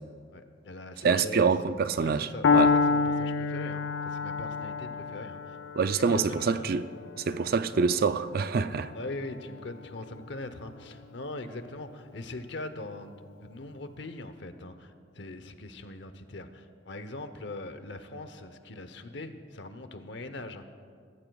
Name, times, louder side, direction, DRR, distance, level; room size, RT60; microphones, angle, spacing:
voice 1, 0.3-1.5 2.0-5.6 5.9-6.7 8.9-20.6, left 2 dB, 65° left, 0.8 m, -41 dB
voice 2, 1.0-2.7 5.8-6.9 7.3-8.9, right 5 dB, 55° right, 0.4 m, -26 dB
Piano, 2.4-10.4, left 4 dB, 90° left, 0.5 m, -29 dB
23.0 x 14.0 x 2.4 m
head